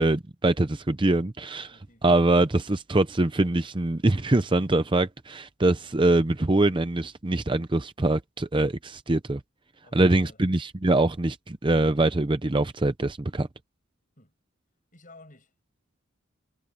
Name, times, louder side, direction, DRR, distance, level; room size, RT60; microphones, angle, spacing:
voice 1, 0.0-1.7 2.0-9.4 9.9-13.5, right 2 dB, 25° right, 0.6 m, -23 dB
voice 2, 1.6-2.1 9.8-10.4 14.2-14.3 14.9-15.5, left 2 dB, 40° left, 6.7 m, -53 dB
head